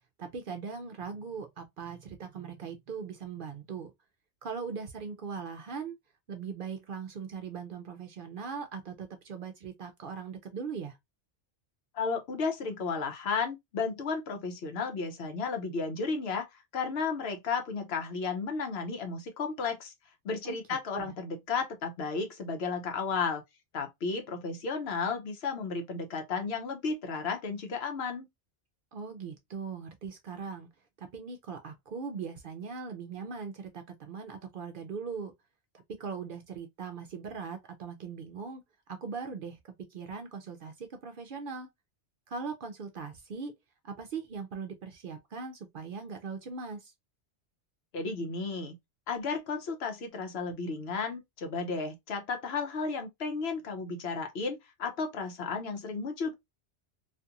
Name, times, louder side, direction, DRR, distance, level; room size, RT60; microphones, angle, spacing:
voice 1, 0.2-3.9 4.4-6.0 6.3-11.0 20.4-20.6 20.9-21.2 28.9-30.7 31.0-35.3 35.9-38.6 38.9-41.7 42.3-43.5 43.8-46.9, right 5 dB, 60° right, 0.6 m, -40 dB
voice 2, 11.9-16.5 16.7-19.9 20.2-23.4 23.7-28.3 47.9-48.8 49.1-56.3, left 4 dB, 65° left, 0.9 m, -33 dB
2.5 x 2.4 x 2.6 m
omnidirectional pair, 1.2 m